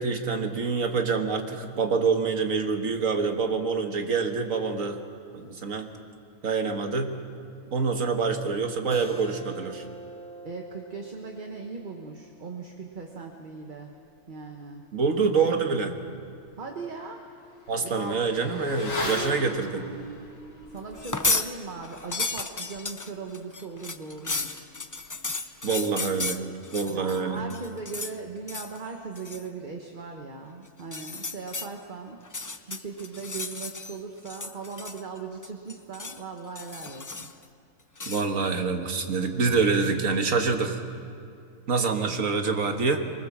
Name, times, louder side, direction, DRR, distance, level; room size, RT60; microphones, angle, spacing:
voice 1, 0.0-5.0 5.3-5.9 6.4-7.1 7.7-9.8 14.9-16.0 17.7-19.9 25.6-26.4 26.7-27.4 38.1-40.8 41.7-43.0, right 4 dB, 75° right, 5 dB, 1.8 m, -26 dB
Keyboard (musical), 8.9-14.1, right 1 dB, 5° left, 1.4 m, -47 dB
voice 2, 10.4-13.9 14.3-14.8 16.5-17.2 17.8-18.3 20.7-24.7 26.9-32.2 32.7-37.3 38.0-38.2, right 4 dB, 40° right, 2 dB, 1.3 m, -39 dB
Motorcycle / Accelerating revving vroom, 16.3-26.3 26.6-26.7, left 2 dB, 45° left, 2.4 m, -39 dB
sound 1, 20.9-21.5 21.8-27.2 27.5-28.2 28.5-28.8 29.2-29.5 30.8-31.7 32.2-34.0 34.3-35.2 35.4-36.2 36.6-37.4 38.0-38.3, left 3 dB, 25° left, 0.4 m, -33 dB
23.0 x 20.5 x 7.3 m, 2.3 s
omnidirectional pair, 1.4 m